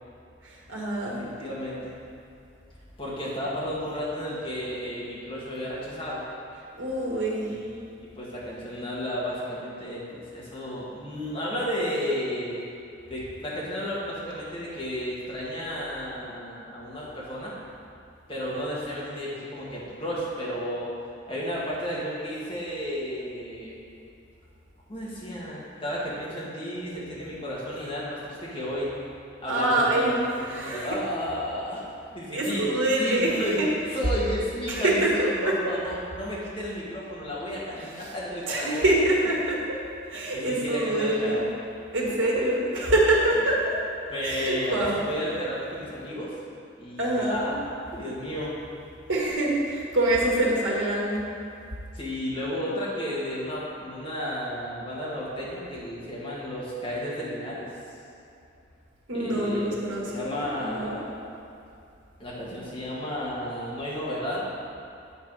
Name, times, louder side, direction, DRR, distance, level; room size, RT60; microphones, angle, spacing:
voice 1, 0.4-1.2 6.8-7.4 29.5-30.2 30.4-30.9 32.3-33.7 34.7-35.5 38.5-39.8 40.1-41.4 41.9-43.7 44.2-45.0 47.0-47.5 49.1-51.2 59.1-61.0, right 1 dB, 80° right, -4 dB, 1.6 m, -25 dB
voice 2, 1.0-1.9 3.0-6.2 7.5-12.6 13.1-17.5 18.3-20.9 21.3-23.8 24.9-28.9 29.4-30.1 30.5-31.8 32.1-32.6 33.0-38.8 40.3-41.5 44.1-46.3 46.8-47.6 47.9-48.5 51.9-57.7 59.1-59.7 60.1-61.1 62.2-64.5, equal, 25° left, -7 dB, 1.6 m, -33 dB
8.3 x 4.7 x 4.7 m, 2.6 s
head